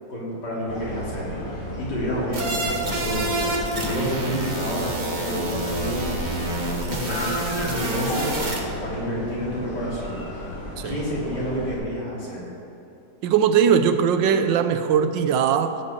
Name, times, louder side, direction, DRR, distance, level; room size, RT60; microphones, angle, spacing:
voice 1, 0.1-10.5 10.8-12.5, equal, 65° left, -6 dB, 3.7 m, -30 dB
sound 1, 0.7-11.8, left 1 dB, 30° left, 1.7 m, -34 dB
sound 2, 2.3-8.6, right 2 dB, 30° right, 1.2 m, -28 dB
voice 2, 13.2-15.8, right 7 dB, 90° right, 10 dB, 1.4 m, -20 dB
15.0 x 5.6 x 6.9 m, 2.9 s
omnidirectional pair, 2.0 m